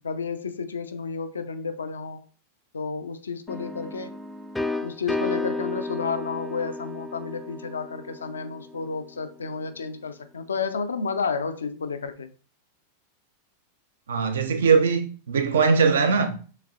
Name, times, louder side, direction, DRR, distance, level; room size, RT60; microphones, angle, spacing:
voice 1, 0.0-2.3 2.7-4.1 4.8-12.3, left 5 dB, 70° left, 0.5 m, -31 dB
sound 1, 3.5-9.2, left 2 dB, 5° left, 0.3 m, -33 dB
voice 2, 14.1-16.4, right 5 dB, 65° right, 0.6 m, -21 dB
6.4 x 3.2 x 2.4 m
figure-of-eight pair, 90°, 0 cm